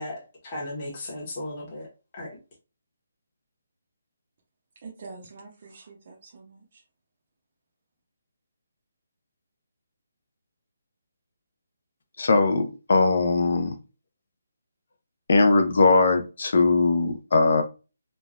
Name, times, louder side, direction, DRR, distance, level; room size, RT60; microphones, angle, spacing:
voice 1, 0.0-2.4, left 1 dB, 20° left, 0.9 m, -36 dB
voice 2, 4.8-6.8, right 4 dB, 35° right, 0.5 m, -45 dB
voice 3, 12.2-13.8 15.3-17.6, left 3 dB, 55° left, 0.5 m, -20 dB
3.2 x 2.1 x 2.5 m
hypercardioid pair, 175°, 0 cm